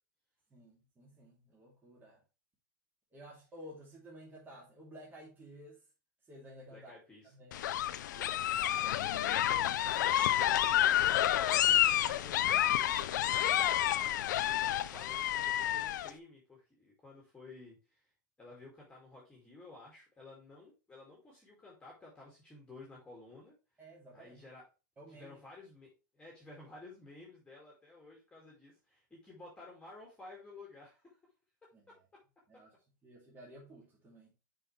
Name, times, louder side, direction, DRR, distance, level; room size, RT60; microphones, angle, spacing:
voice 1, 0.5-2.2 3.1-5.8 6.3-6.9 7.2-8.6 23.8-24.4 25.0-25.4 31.7-31.8 32.5-32.7 33.0-34.3, equal, 20° right, 2.6 m, -54 dB
voice 2, 6.7-7.8 8.3-18.1 18.4-23.5 24.1-24.6 25.1-31.2 31.9-32.0, left 2 dB, 10° left, 2.3 m, -54 dB
sound 1, 7.5-16.1, left 12 dB, 70° left, 0.6 m, -29 dB
6.9 x 5.2 x 3.3 m
hypercardioid pair, 125°, 10 cm